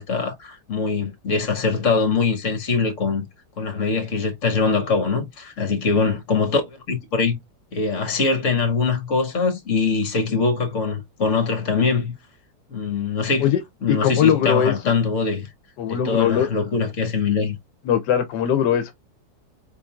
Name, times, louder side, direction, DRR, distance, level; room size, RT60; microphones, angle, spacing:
voice 1, 0.0-3.2 3.6-7.4 7.7-12.1 12.7-13.5 13.8-15.5 15.9-17.5, left 4 dB, 50° left, 1.7 m, -23 dB
voice 2, 13.9-14.8 15.8-16.5 17.8-18.9, left 9 dB, 85° left, 1.2 m, -20 dB
4.2 x 3.9 x 2.3 m
omnidirectional pair, 1.8 m